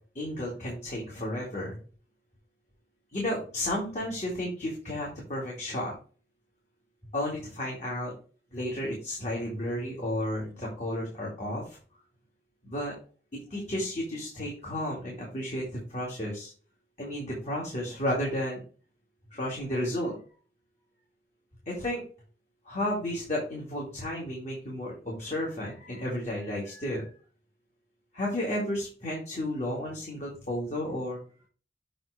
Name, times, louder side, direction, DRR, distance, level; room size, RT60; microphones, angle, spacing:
voice 1, 0.1-1.8 3.1-5.9 7.1-8.1 8.5-11.8 12.6-12.9 13.5-15.6 15.9-16.5 17.0-18.6 19.3-20.1 21.7-22.0 22.7-27.0 28.1-31.2, left 1 dB, 40° left, -4 dB, 2.1 m, -32 dB
7.7 x 3.1 x 4.7 m, 0.39 s
head